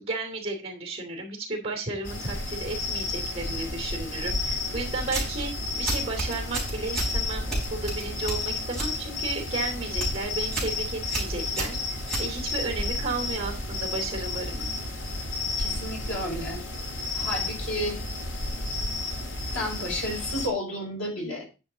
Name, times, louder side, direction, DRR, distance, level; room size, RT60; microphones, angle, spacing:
voice 1, 0.0-5.5 5.8-14.7, right 3 dB, 30° right, 3 dB, 2.8 m, -33 dB
sound 1, 2.0-20.5, left 2 dB, 75° left, 1.9 m, -32 dB
sound 2, 5.0-5.4 5.8-7.1 7.5-9.0 9.3-9.6 9.9-10.2 10.5-10.8 11.1-12.7, right 2 dB, 5° left, 5.1 m, -31 dB
voice 2, 15.6-16.6 17.1-18.0 19.5-21.5, left 1 dB, 90° left, -1 dB, 5.3 m, -31 dB
10.5 x 6.9 x 4.0 m, 0.30 s
head